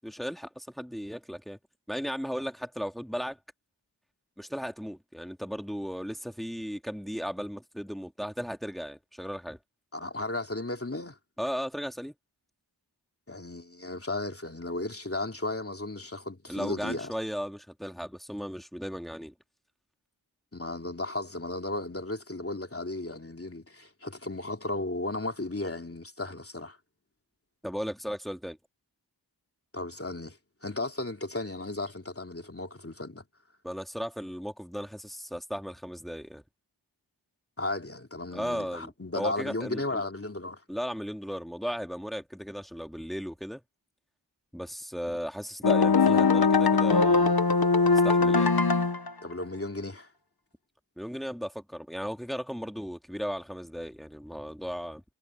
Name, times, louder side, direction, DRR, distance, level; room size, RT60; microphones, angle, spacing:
voice 1, 0.0-1.6 1.9-3.4 4.4-9.6 11.4-12.1 16.5-19.3 27.6-28.6 33.6-36.4 38.3-40.0 40.7-43.6 44.5-47.3 47.9-48.5 51.0-55.0, equal, ahead, 2.4 m, -36 dB
voice 2, 9.9-11.2 13.3-17.1 20.5-26.8 29.7-33.2 37.6-40.6 49.2-50.1, left 2 dB, 30° left, 3.1 m, -35 dB
sound 1, 45.6-49.1, left 4 dB, 55° left, 1.1 m, -21 dB
wide cardioid pair, 45°, 42 cm